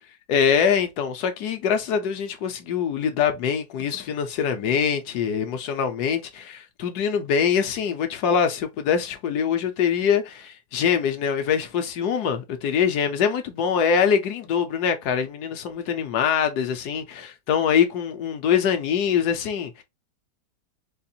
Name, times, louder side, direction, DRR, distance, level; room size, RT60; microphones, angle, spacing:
voice 1, 0.3-19.8, left 7 dB, 75° left, 1.2 m, -24 dB
4.3 x 2.4 x 2.7 m
omnidirectional pair, 1.8 m